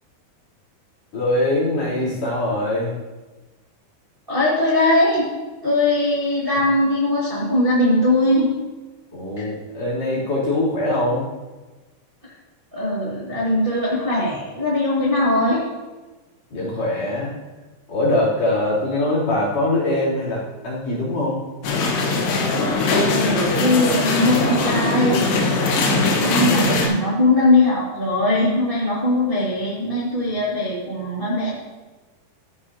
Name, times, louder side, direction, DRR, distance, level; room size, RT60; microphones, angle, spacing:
voice 1, 1.1-2.9 9.1-11.3 16.5-17.3 17.9-21.4 25.8-26.3, left 1 dB, 45° left, -8 dB, 4.3 m, -23 dB
voice 2, 4.3-5.3 5.6-8.5 9.4-9.5 12.2-12.3 12.7-15.6 23.1-25.2 25.6-31.6, left 1 dB, 85° right, -6 dB, 0.4 m, -20 dB
sound 1, 21.6-26.9, left 3 dB, 80° left, 3.3 m, -20 dB
13.0 x 9.7 x 2.9 m, 1.2 s
omnidirectional pair, 4.6 m